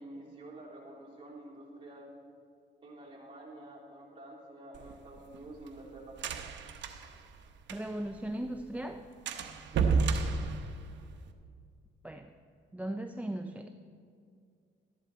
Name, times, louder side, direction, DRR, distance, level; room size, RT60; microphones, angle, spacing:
voice 1, 0.0-2.1 2.8-6.2 9.7-10.1, right 1 dB, 25° right, -4 dB, 3.4 m, -49 dB
sound 1, 4.7-8.1 8.4-8.5 8.8-8.9 9.3-11.3, right 5 dB, 65° right, 0.9 m, -32 dB
voice 2, 7.7-9.1 12.0-12.3 12.7-13.7, right 1 dB, 5° right, 6 dB, 0.4 m, -37 dB
13.5 x 11.0 x 4.2 m, 2.3 s
cardioid pair, 90°, 20 cm